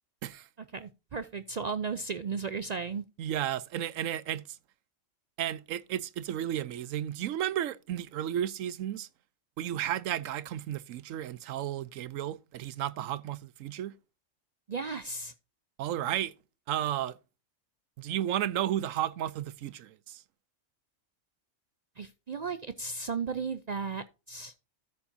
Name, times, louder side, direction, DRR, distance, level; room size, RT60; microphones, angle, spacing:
voice 1, 0.7-3.0 14.7-15.3 22.0-24.5, right 5 dB, 65° right, 0.4 m, -35 dB
voice 2, 3.2-4.4 5.4-9.1 9.6-13.9 15.8-16.3 16.7-17.2 18.0-20.2, right 11 dB, 85° right, 1.0 m, -33 dB
13.0 x 7.1 x 2.6 m
omnidirectional pair, 1.3 m